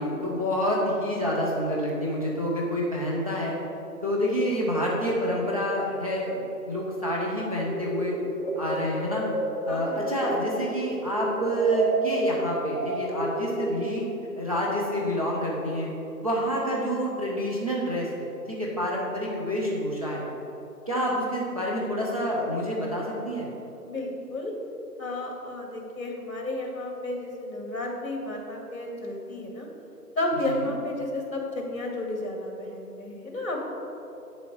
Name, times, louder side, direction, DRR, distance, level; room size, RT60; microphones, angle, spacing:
voice 1, 0.0-3.6 4.0-8.2 8.6-9.3 9.6-14.0 14.4-15.9 16.2-20.3 20.9-23.5 30.4-30.7, equal, 25° right, -4 dB, 0.7 m, -28 dB
sound 1, 7.6-10.8 11.1-14.1, right 1 dB, 10° left, 1.8 m, -31 dB
voice 2, 9.7-10.3 23.9-24.5 25.0-29.7 30.2-33.7, left 1 dB, 55° left, 0 dB, 2.1 m, -32 dB
9.3 x 7.1 x 4.6 m, 2.9 s
figure-of-eight pair, 160°, 49 cm